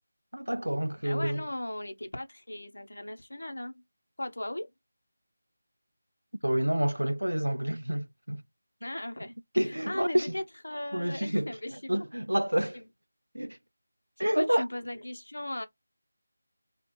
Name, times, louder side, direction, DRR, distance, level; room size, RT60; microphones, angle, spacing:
voice 1, 0.3-1.5 6.4-8.4 9.5-10.3 10.9-11.5 11.9-12.8 13.3-13.6 14.2-14.7, right 1 dB, 85° right, 0.3 m, -28 dB
voice 2, 1.0-3.8 4.2-4.7 8.8-9.3 9.6-11.9 12.7-12.8 14.2-15.7, left 1 dB, 70° left, 0.8 m, -37 dB
3.4 x 2.4 x 3.0 m
figure-of-eight pair, 160°, 0 cm